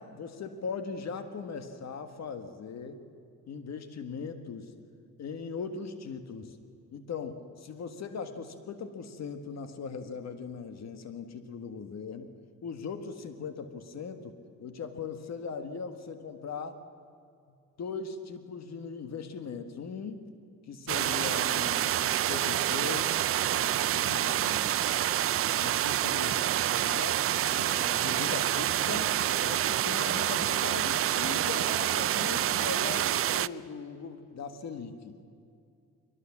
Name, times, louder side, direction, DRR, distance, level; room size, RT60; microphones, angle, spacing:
voice 1, 0.0-3.0 3.5-4.7 5.2-6.6 6.9-12.3 12.6-16.8 17.8-20.2 20.7-23.1 23.5-24.7 25.6-26.4 26.8-27.2 27.5-29.1 29.4-35.2, left 5 dB, 60° left, 8 dB, 1.7 m, -39 dB
sound 1, 20.9-33.5, right 12 dB, 50° right, 0.5 m, -27 dB
22.0 x 18.5 x 7.4 m, 2.4 s
cardioid pair, 90°, 30 cm